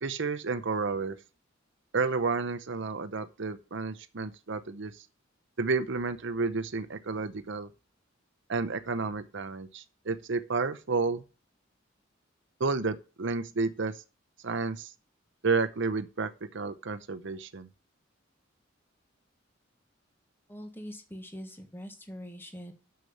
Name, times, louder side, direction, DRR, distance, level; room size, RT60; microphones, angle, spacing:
voice 1, 0.0-1.2 1.9-4.9 5.6-7.7 8.5-11.2 12.6-13.9 14.4-14.9 15.4-17.7, right 4 dB, 65° right, 0.8 m, -31 dB
voice 2, 20.5-22.7, equal, 10° left, 1.5 m, -43 dB
6.8 x 6.5 x 6.9 m
head